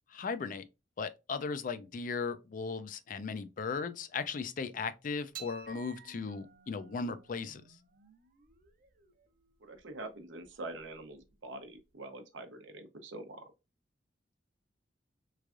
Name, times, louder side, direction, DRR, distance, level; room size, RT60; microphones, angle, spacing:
voice 1, 0.1-0.6 1.0-7.6, left 5 dB, 45° left, 0.4 m, -37 dB
sound 1, 5.3-11.9, right 7 dB, 50° right, 0.6 m, -55 dB
voice 2, 9.6-13.4, right 2 dB, 90° right, 0.7 m, -45 dB
3.5 x 3.2 x 2.4 m
head